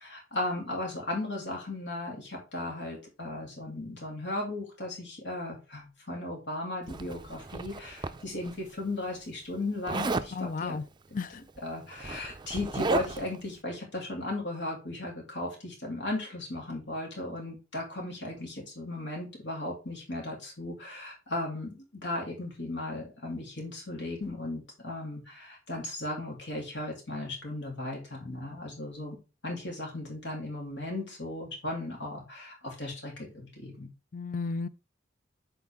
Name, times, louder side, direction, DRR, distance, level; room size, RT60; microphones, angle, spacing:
voice 1, 0.0-10.8 11.3-29.2 29.4-33.9, left 2 dB, 75° left, 3.1 m, -36 dB
Zipper (clothing), 6.9-8.5 9.9-10.3 11.5-11.6 11.9-13.4, right 3 dB, 25° right, 0.4 m, -33 dB
voice 2, 10.3-10.8 11.1-11.4 34.1-34.7, left 4 dB, 45° left, 0.5 m, -33 dB
8.0 x 4.6 x 3.6 m
head